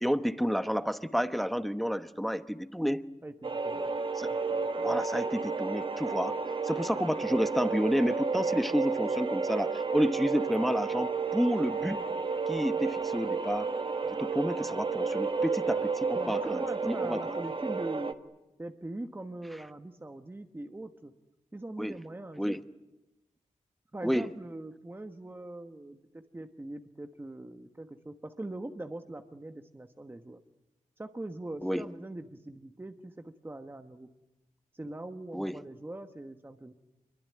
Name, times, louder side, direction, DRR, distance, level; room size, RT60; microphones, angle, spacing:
voice 1, 0.0-3.0 4.2-4.3 4.8-6.3 6.6-12.0 12.5-13.7 14.2-17.2 21.8-22.0 22.4-22.6 24.0-24.3 31.6-31.9 35.3-35.5, equal, ahead, 11 dB, 1.0 m, -30 dB
voice 2, 3.2-3.9 4.5-4.7 14.0-14.3 15.8-15.9 16.1-18.2 18.6-21.1 21.5-22.6 23.9-30.4 31.0-34.1 34.7-36.7, right 2 dB, 15° right, 7 dB, 1.2 m, -42 dB
sound 1, 3.4-18.1, right 4 dB, 40° right, 1.3 m, -32 dB
27.5 x 23.0 x 9.5 m, 0.97 s
wide cardioid pair, 130°, 13 cm